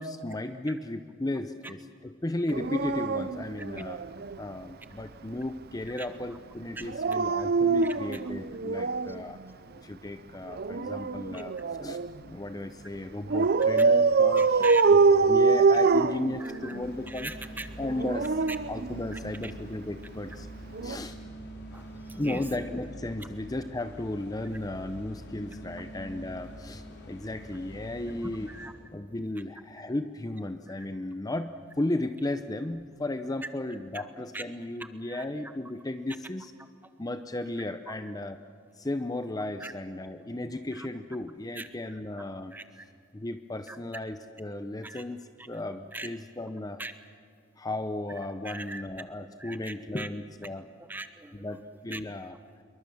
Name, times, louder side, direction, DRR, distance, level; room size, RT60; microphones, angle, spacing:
voice 1, 0.0-4.1 4.4-9.4 9.8-17.3 17.8-18.4 18.7-20.5 20.8-21.2 22.2-28.5 28.9-36.5 37.0-38.4 38.7-42.5 43.1-46.8 47.6-50.7 51.3-52.4, left 1 dB, 20° left, 9 dB, 0.7 m, -35 dB
Dog, 2.5-4.4 6.8-9.2 10.5-12.2 13.3-16.9 17.8-19.5 20.7-21.0, right 4 dB, 55° right, 0.6 m, -24 dB
voice 2, 14.3-14.8 15.9-16.0 16.4-16.8 17.1-17.7 19.1-19.2 21.7-22.4 28.2-28.7 30.7-30.8 33.9-34.0 34.3-34.4 34.8-35.2 37.9-38.0 39.6-39.7 40.8-40.9 41.5-41.7 42.5-42.8 43.7-43.8 44.8-45.0 45.9-46.1 46.8-46.9 48.4-48.8 49.4-50.1 50.9-51.4 51.9-52.0, right 2 dB, 10° right, 9 dB, 1.1 m, -40 dB
sound 1, 16.8-28.7, equal, 60° left, 4.1 m, -44 dB
26.5 x 23.0 x 7.2 m, 2.3 s
head